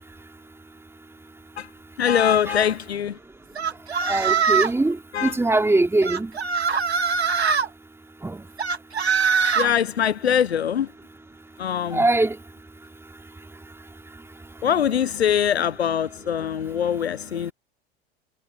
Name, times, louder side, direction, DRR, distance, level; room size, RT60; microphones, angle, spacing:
voice 1, 2.0-3.2 5.1-5.3 9.6-10.9 11.6-12.1 14.6-17.5, left 9 dB, 80° left, 1.0 m, -23 dB
sound 1, 3.6-4.8 6.0-7.7 8.6-9.7, right 6 dB, 85° right, 1.8 m, -22 dB
voice 2, 4.1-6.3 8.2-8.4 11.9-12.4, right 2 dB, 10° right, 3.1 m, -21 dB
figure-of-eight pair, 85°, 31 cm